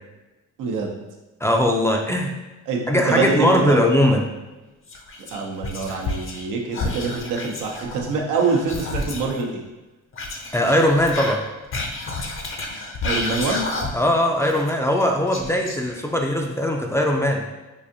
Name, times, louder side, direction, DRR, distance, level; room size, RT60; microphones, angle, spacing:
voice 1, 0.6-1.0 2.7-3.8 5.3-9.6 13.0-13.6, right 4 dB, 90° right, 0 dB, 0.7 m, -25 dB
voice 2, 1.4-2.3 2.9-4.2 10.5-11.4 13.9-17.4, left 1 dB, 10° left, 1 dB, 0.4 m, -20 dB
Whispering, 4.9-6.5 6.7-9.4 10.1-14.1 14.4-16.2, left 2 dB, 45° left, 0.7 m, -30 dB
4.7 x 2.5 x 2.7 m, 1.1 s
cardioid pair, 90°, 30 cm